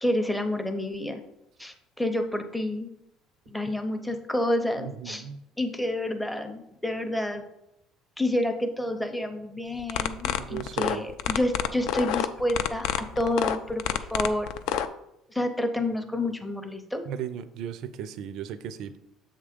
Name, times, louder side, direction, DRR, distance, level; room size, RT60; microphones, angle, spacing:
voice 1, 0.0-1.2 1.6-2.9 3.5-5.3 5.6-7.4 8.2-14.5 15.3-17.0, left 1 dB, ahead, 5 dB, 0.6 m, -29 dB
voice 2, 4.8-5.4 10.4-11.0 17.1-19.0, right 9 dB, 55° right, 11 dB, 0.4 m, -36 dB
sound 1, 9.8-14.9, left 10 dB, 65° left, 0.4 m, -27 dB
7.2 x 3.6 x 5.0 m, 0.84 s
cardioid pair, 165°, 0 cm